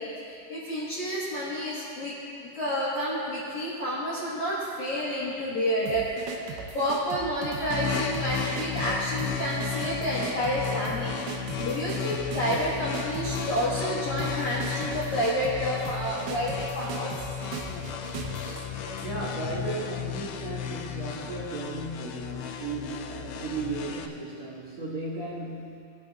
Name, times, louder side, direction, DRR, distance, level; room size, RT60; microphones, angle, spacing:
voice 1, 0.0-2.1 2.4-6.0 6.4-11.2 11.6-17.1, equal, 60° left, -10 dB, 2.1 m, -29 dB
sound 1, 5.9-19.1, right 7 dB, 90° right, 3.4 m, -39 dB
sound 2, 7.7-24.1, left 8 dB, 90° left, 2.4 m, -34 dB
voice 2, 19.0-25.8, right 3 dB, 55° right, -8 dB, 1.9 m, -35 dB
20.0 x 8.8 x 2.4 m, 2.5 s
omnidirectional pair, 5.6 m